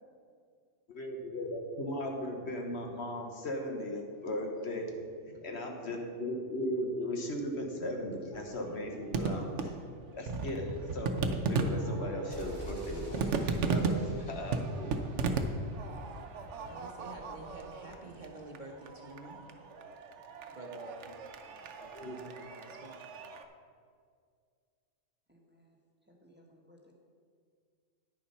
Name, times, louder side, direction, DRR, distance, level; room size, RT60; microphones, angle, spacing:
voice 1, 0.9-4.9 5.3-9.7 10.1-13.3 13.7-15.0 21.8-22.2, left 1 dB, 55° left, 2 dB, 1.3 m, -37 dB
sound 1, 8.3-23.4, right 4 dB, 65° right, 1.0 m, -36 dB
sound 2, 12.3-16.1, equal, 25° left, 2.5 m, -46 dB
voice 2, 16.7-19.5 20.5-21.1 22.0-23.0, right 2 dB, 40° right, 0 dB, 1.0 m, -48 dB
voice 3, 25.3-25.8 26.2-26.9, equal, 10° right, -1 dB, 1.2 m, -61 dB
9.7 x 7.0 x 5.4 m, 2.1 s
omnidirectional pair, 1.3 m